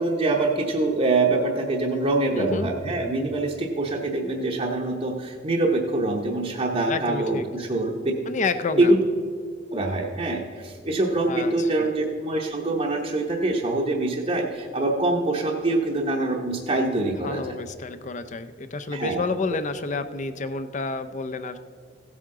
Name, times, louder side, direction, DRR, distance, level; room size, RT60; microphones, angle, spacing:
voice 1, 0.0-8.1 8.8-9.0 9.7-17.6 18.9-19.2, right 2 dB, 35° right, -1 dB, 0.8 m, -24 dB
voice 2, 2.4-2.7 6.9-7.5 8.3-8.9 11.2-11.9 17.0-21.6, left 3 dB, 40° left, 11 dB, 0.5 m, -30 dB
15.5 x 8.5 x 3.7 m, 2.2 s
head